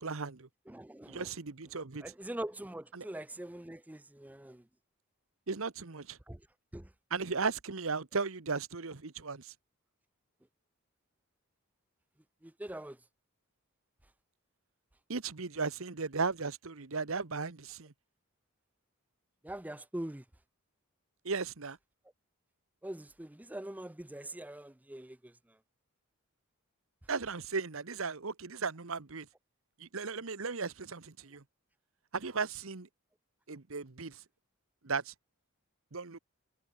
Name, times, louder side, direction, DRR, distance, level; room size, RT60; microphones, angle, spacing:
voice 1, 0.0-0.5 1.1-2.0 2.9-3.0 5.5-6.2 7.1-9.5 15.1-17.9 21.2-21.8 27.1-29.3 29.8-31.4 32.1-32.9 33.5-34.2 34.8-35.1 35.9-36.2, right 4 dB, 70° right, 1.1 m, -36 dB
voice 2, 0.7-1.3 2.0-4.7 6.3-6.5 6.7-6.9 12.4-13.0 19.4-20.2 22.8-25.6, right 1 dB, 5° right, 0.5 m, -43 dB
head